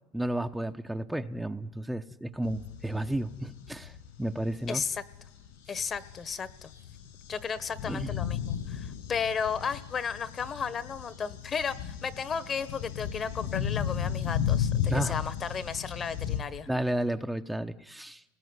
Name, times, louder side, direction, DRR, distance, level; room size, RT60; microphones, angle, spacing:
voice 1, 0.1-4.8 5.7-5.8 7.9-8.1 14.9-15.2 16.7-18.2, right 1 dB, 5° right, 6 dB, 0.9 m, -32 dB
sound 1, 2.4-16.4, left 9 dB, 75° left, 6.6 m, -35 dB
voice 2, 4.7-5.0 5.7-6.7 7.3-16.7, left 6 dB, 35° left, 14 dB, 1.4 m, -34 dB
30.0 x 19.5 x 9.7 m, 1.0 s
supercardioid pair, 100°, 0 cm